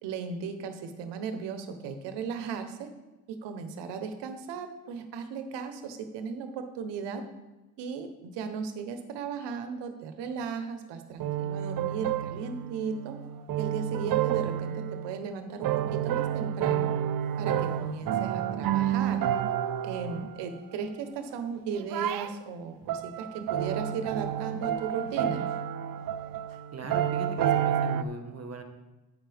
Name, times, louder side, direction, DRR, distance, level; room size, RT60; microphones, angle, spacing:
voice 1, 0.0-2.9 3.3-7.2 7.8-13.2 13.6-16.9 17.4-19.2 19.8-25.5, right 5 dB, 85° right, 8 dB, 1.1 m, -36 dB
sound 1, 11.2-15.2 15.6-20.4 21.8-22.3 22.9-28.0, right 10 dB, 55° right, 0.6 m, -30 dB
voice 2, 26.7-28.6, right 3 dB, 35° right, 6 dB, 1.5 m, -39 dB
10.0 x 8.8 x 3.5 m, 1.1 s
supercardioid pair, 70°, 41 cm